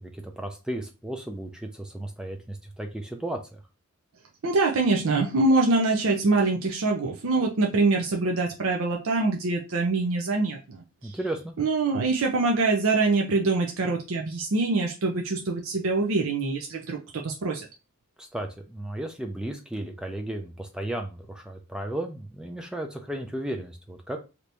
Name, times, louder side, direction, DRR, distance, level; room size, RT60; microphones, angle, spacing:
voice 1, 0.0-3.6 11.0-11.5 18.2-24.2, right 1 dB, 5° right, 4 dB, 0.3 m, -34 dB
voice 2, 4.4-11.2 11.6-17.7, right 3 dB, 65° right, 1 dB, 0.5 m, -24 dB
2.9 x 2.6 x 3.3 m, 0.30 s
head